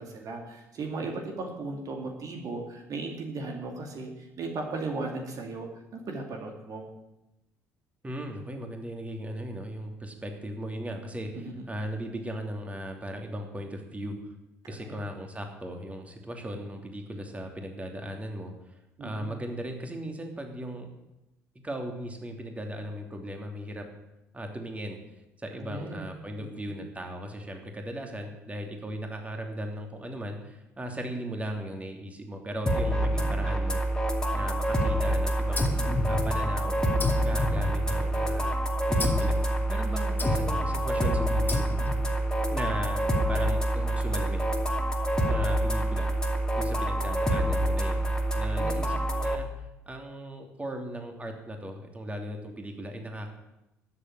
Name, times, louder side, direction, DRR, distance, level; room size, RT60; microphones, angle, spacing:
voice 1, 0.0-4.1 4.4-6.9 11.3-11.7 14.6-15.0 19.0-19.4 25.6-26.0 26.4-26.6 33.1-33.4 48.6-48.9, right 3 dB, 50° right, 2 dB, 2.4 m, -37 dB
voice 2, 8.0-14.3 14.7-18.5 19.0-20.9 21.6-23.8 24.3-25.0 25.4-33.8 34.3-35.7 36.1-36.7 37.2-38.6 38.9-41.8 42.5-43.0 43.3-44.5 45.3-46.1 46.5-48.1 48.3-49.5 49.9-53.3, equal, 15° right, 3 dB, 2.9 m, -37 dB
sound 1, 32.7-49.4, right 1 dB, 10° left, 2.4 m, -27 dB
sound 2, 35.6-36.6 37.0-38.3 39.0-39.4 40.2-40.7 41.5-42.1, left 2 dB, 25° left, 2.0 m, -31 dB
13.0 x 7.7 x 9.5 m, 0.92 s
hypercardioid pair, 55°, 8 cm